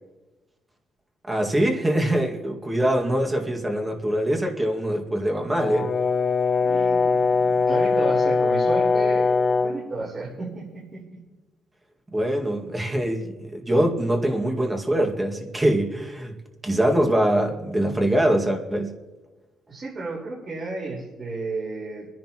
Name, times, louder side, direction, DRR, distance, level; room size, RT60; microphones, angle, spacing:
voice 1, 1.3-5.9 12.1-16.4 16.6-19.0, right 1 dB, 20° right, 2 dB, 2.0 m, -23 dB
Brass instrument, 5.6-9.8, left 4 dB, 45° left, 1.0 m, -21 dB
voice 2, 6.6-11.2 19.7-22.1, right 3 dB, 40° right, -7 dB, 4.2 m, -33 dB
27.0 x 10.5 x 3.0 m, 1.2 s
cardioid pair, 90°, 0 cm